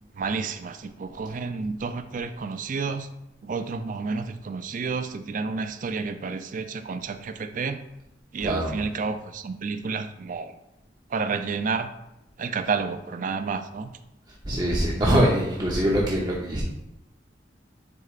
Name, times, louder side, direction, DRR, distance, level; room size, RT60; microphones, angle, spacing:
voice 1, 0.1-3.1 3.4-7.8 8.3-10.6 11.1-11.9 12.4-13.9, right 4 dB, 45° right, 9 dB, 0.4 m, -30 dB
voice 2, 8.4-8.7 14.5-16.6, equal, 25° right, -4 dB, 0.8 m, -23 dB
9.6 x 4.5 x 2.4 m, 0.89 s
head